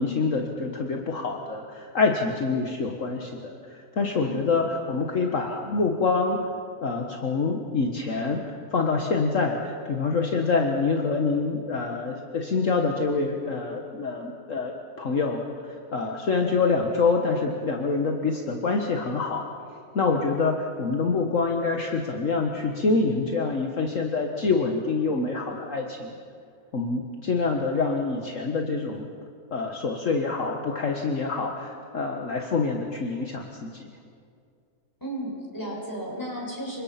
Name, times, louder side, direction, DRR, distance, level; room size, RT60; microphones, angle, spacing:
voice 1, 0.0-6.4 6.8-8.4 8.7-19.5 19.9-26.2 26.7-29.1 29.5-33.9, left 4 dB, 55° left, 2 dB, 1.8 m, -26 dB
voice 2, 4.2-4.5 35.0-36.8, right 1 dB, 10° left, -3 dB, 6.7 m, -34 dB
28.5 x 24.5 x 5.9 m, 2.3 s
omnidirectional pair, 1.6 m